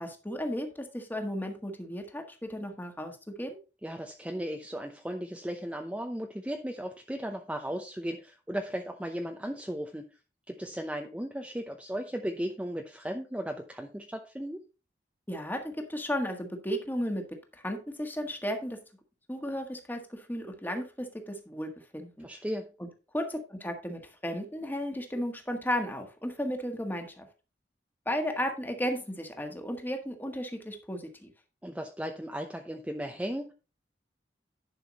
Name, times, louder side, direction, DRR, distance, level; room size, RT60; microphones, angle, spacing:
voice 1, 0.0-3.6 15.3-18.8 19.3-22.3 22.8-22.9 23.1-27.3 28.1-31.3, equal, 10° left, 5 dB, 1.6 m, -34 dB
voice 2, 3.8-10.1 10.5-14.6 22.2-22.7 31.6-33.5, equal, 5° right, 4 dB, 0.7 m, -36 dB
10.5 x 5.7 x 4.1 m, 0.32 s
head